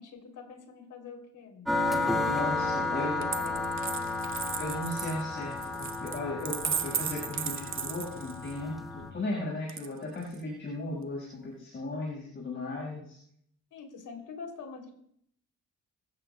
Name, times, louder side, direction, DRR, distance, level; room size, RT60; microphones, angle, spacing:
voice 1, 0.0-2.0 2.9-3.8 13.7-14.9, left 5 dB, 70° left, 3 dB, 3.2 m, -45 dB
sound 1, 1.7-9.1, left 2 dB, ahead, 2.1 m, -32 dB
voice 2, 2.2-3.2 4.6-13.2, left 2 dB, 40° left, -3 dB, 5.5 m, -36 dB
Coin (dropping), 3.2-8.6 9.7-10.4, right 7 dB, 40° right, 0.9 m, -36 dB
25.5 x 14.5 x 2.3 m, 0.67 s
cardioid pair, 140°, 31 cm